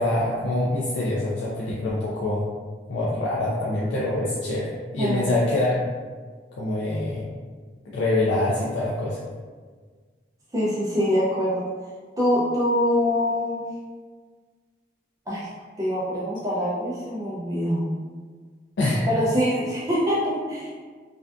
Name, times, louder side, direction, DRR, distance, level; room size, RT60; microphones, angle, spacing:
voice 1, 0.0-2.4 2.9-5.9 6.6-7.3 7.9-9.2 18.8-19.1, left 2 dB, 90° left, -6 dB, 0.4 m, -25 dB
voice 2, 5.0-5.3 10.5-11.7 12.2-13.6 15.3-15.5 15.8-17.8 19.1-20.7, equal, 20° right, -7 dB, 0.3 m, -24 dB
2.5 x 2.3 x 2.3 m, 1.5 s
head